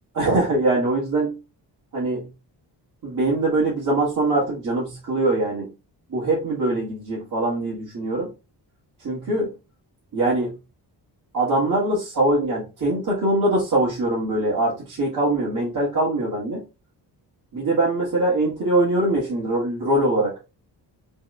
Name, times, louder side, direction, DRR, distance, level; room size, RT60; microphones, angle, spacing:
voice 1, 0.1-1.4 1.9-2.3 3.0-5.7 6.1-8.3 9.0-9.5 10.1-10.5 11.3-16.6 17.5-20.3, right 2 dB, 45° right, -6 dB, 1.9 m, -22 dB
5.8 x 3.6 x 2.3 m, 0.28 s
wide cardioid pair, 165°, 43 cm